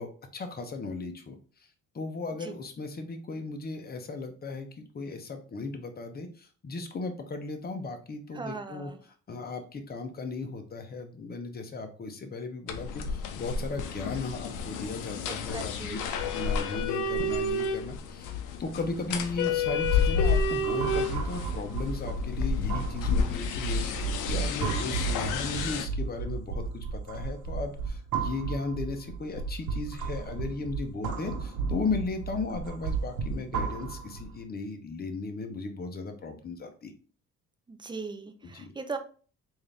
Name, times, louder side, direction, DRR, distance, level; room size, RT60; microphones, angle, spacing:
voice 1, 0.0-1.4 1.9-8.9 9.3-16.0 16.2-36.9 38.4-38.7, left 3 dB, 30° left, 5 dB, 0.8 m, -36 dB
voice 2, 8.3-9.0 15.3-16.1 37.7-39.0, right 4 dB, 15° right, 7 dB, 0.5 m, -39 dB
sound 1, 12.7-25.9, left 4 dB, 90° left, 0.6 m, -30 dB
sound 2, 19.7-34.4, right 5 dB, 75° right, 1.0 m, -34 dB
3.6 x 2.7 x 3.4 m, 0.39 s
cardioid pair, 90°, 30 cm